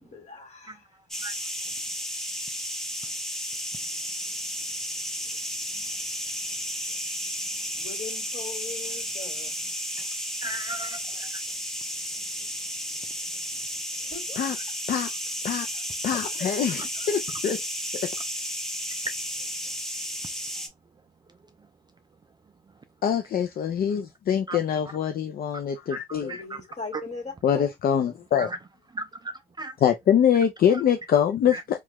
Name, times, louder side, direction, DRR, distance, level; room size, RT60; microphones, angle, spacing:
voice 1, 0.0-1.0 1.3-1.5 7.8-9.5 14.1-14.7 15.1-15.2 15.7-15.8 16.1-16.3 16.7-17.1 26.1-27.7, left 4 dB, 35° left, 1.9 m, -40 dB
sound 1, 1.1-20.7, equal, ahead, 0.8 m, -33 dB
voice 2, 10.4-11.3 24.5-24.6 26.3-26.4 28.4-28.6 29.0-29.3 29.6-29.7 31.5-31.6, right 2 dB, 20° right, 0.4 m, -35 dB
voice 3, 16.0-17.6 23.0-26.3 27.4-28.5 29.8-31.8, left 8 dB, 50° left, 0.4 m, -24 dB
2.9 x 2.3 x 2.9 m
cardioid pair, 90°, 20 cm